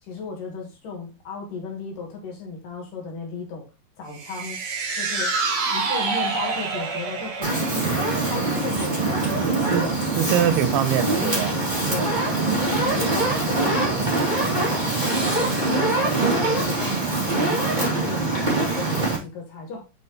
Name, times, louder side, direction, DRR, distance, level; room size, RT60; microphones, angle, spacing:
voice 1, 0.0-3.7 4.0-4.6 4.9-5.4 5.7-9.4 11.1-12.2 12.6-19.8, left 4 dB, 60° left, 2.9 m, -35 dB
sound 1, 4.1-10.6 10.9-11.0, right 4 dB, 50° right, 3.7 m, -29 dB
Fire, 7.4-19.2, right 2 dB, 10° right, 2.5 m, -23 dB
voice 2, 9.4-11.5, right 9 dB, 85° right, 3.2 m, -24 dB
8.8 x 5.4 x 3.1 m
omnidirectional pair, 5.1 m